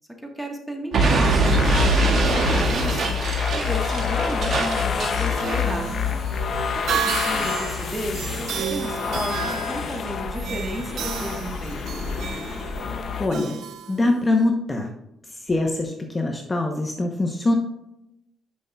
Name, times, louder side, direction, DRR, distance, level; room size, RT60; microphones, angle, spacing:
voice 1, 0.2-3.1 3.5-5.9 6.4-11.8, equal, 5° right, 2 dB, 1.4 m, -33 dB
Explosion, 0.9-5.7, right 3 dB, 55° right, 1.8 m, -23 dB
sound 1, 1.4-13.3, left 6 dB, 55° left, 0.6 m, -27 dB
sound 2, 4.9-14.5, right 7 dB, 75° right, 0.8 m, -32 dB
voice 2, 13.2-13.6 13.9-14.9 15.5-17.5, left 2 dB, 25° left, 2 dB, 0.9 m, -23 dB
10.5 x 5.3 x 2.3 m, 0.85 s
cardioid pair, 90°, 0 cm